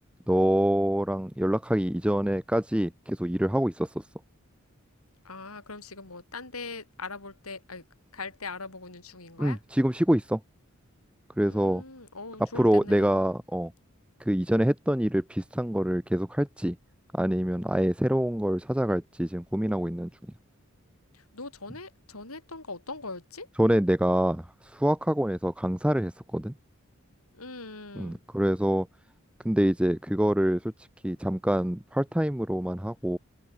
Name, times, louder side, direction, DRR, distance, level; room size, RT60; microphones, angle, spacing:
voice 1, 0.3-4.1 9.4-10.4 11.4-11.8 12.5-13.7 14.2-16.8 17.1-20.1 23.6-26.5 28.0-28.9 29.4-33.2, equal, 5° right, 0.6 m, -26 dB
voice 2, 5.2-7.8 8.1-9.6 11.4-13.1 21.1-23.5 27.3-28.2, left 3 dB, 90° left, 5.9 m, -41 dB
open air
head